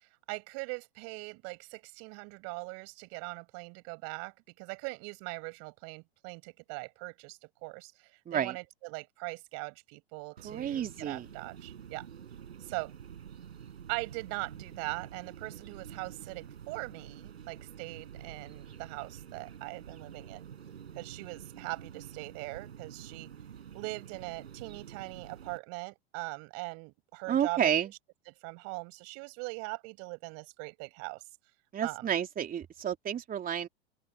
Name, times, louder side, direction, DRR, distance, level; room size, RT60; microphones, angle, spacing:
voice 1, 0.3-7.9 8.3-12.0 12.6-12.9 13.9-20.5 20.9-23.3 23.7-27.7 28.3-31.2 31.8-32.1, right 32 dB, 55° right, 6.8 m, -41 dB
voice 2, 8.2-8.6 10.4-11.3 27.3-27.9 31.7-33.7, right 9 dB, 30° right, 3.4 m, -30 dB
sound 1, 10.4-25.6, right 8 dB, 85° right, 4.4 m, -48 dB
open air
hypercardioid pair, 100°, 31 cm